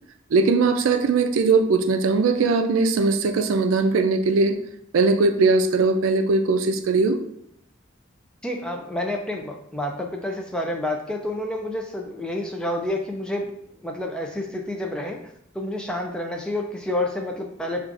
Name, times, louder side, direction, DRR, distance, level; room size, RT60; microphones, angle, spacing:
voice 1, 0.3-4.6 4.9-7.2, right 3 dB, 85° right, 7 dB, 0.4 m, -20 dB
voice 2, 8.4-13.5 13.8-15.2 15.5-17.8, left 1 dB, 5° left, 2 dB, 0.3 m, -29 dB
5.9 x 2.4 x 2.5 m, 0.72 s
head